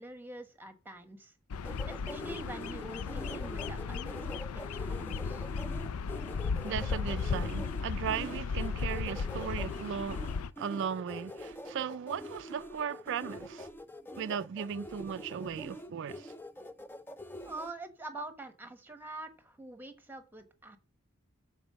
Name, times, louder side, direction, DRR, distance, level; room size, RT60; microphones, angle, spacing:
voice 1, 0.0-1.3 1.9-4.1 4.5-5.5 17.4-20.8, right 2 dB, 10° right, 1.1 m, -45 dB
Bird vocalization bird call bird song, 1.5-10.5, left 5 dB, 85° left, 0.4 m, -36 dB
sound 1, 1.6-17.7, equal, 10° left, 0.4 m, -44 dB
voice 2, 6.6-13.7 14.2-16.3, right 7 dB, 55° right, 0.3 m, -37 dB
7.0 x 4.2 x 6.4 m
head